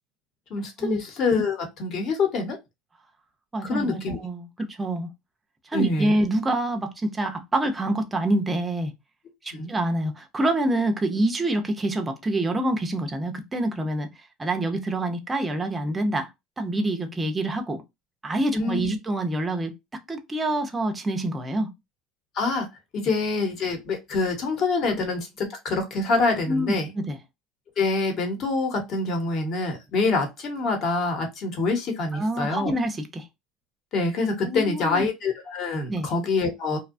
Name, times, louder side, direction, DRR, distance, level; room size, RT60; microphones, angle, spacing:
voice 1, 0.5-2.6 3.6-4.2 5.7-6.1 9.5-9.7 18.5-18.9 22.3-22.7 22.9-26.9 27.8-32.7 33.9-36.8, left 3 dB, 40° left, 1.0 m, -26 dB
voice 2, 3.5-5.1 5.7-8.9 9.4-14.1 14.4-16.3 16.6-17.8 18.2-19.7 20.1-21.7 26.5-27.2 32.1-33.2 34.5-35.1 35.9-36.1, right 1 dB, 15° right, 0.5 m, -26 dB
2.6 x 2.2 x 2.4 m
cardioid pair, 150°, 0 cm